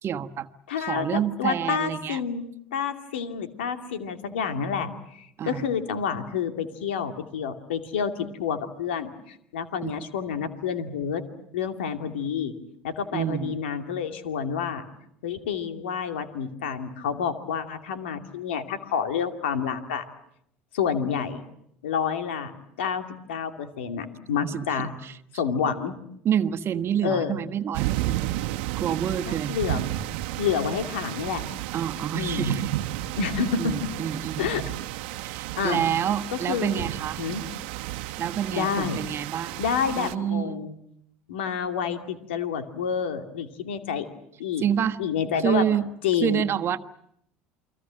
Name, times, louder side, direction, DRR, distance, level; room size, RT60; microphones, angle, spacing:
voice 1, 0.0-0.5 0.8-2.2 5.4-5.7 9.8-10.1 13.1-13.6 24.4-25.4 26.2-28.4 28.8-29.6 31.7-32.7 33.6-34.7 35.2-37.2 38.2-39.6 40.0-40.6 44.6-45.0 45.4-45.9 46.2-46.8, right 9 dB, 45° right, 1.4 m, -28 dB
voice 2, 0.7-11.2 11.5-12.5 12.8-14.8 15.2-20.0 20.7-21.5 21.8-22.5 22.8-23.0 23.3-24.9 25.3-25.9 27.0-27.4 29.3-29.8 30.4-31.4 32.1-32.6 33.2-33.8 34.4-34.6 35.6-35.8 36.3-36.9 37.2-37.4 38.5-39.0 39.6-40.7 41.3-44.1 44.4-44.6 45.0-45.7 46.0-46.5, left 7 dB, 80° left, 2.5 m, -29 dB
sound 1, 27.7-40.1, right 16 dB, 70° right, 1.2 m, -32 dB
29.0 x 23.5 x 7.6 m
hypercardioid pair, 70°, 6 cm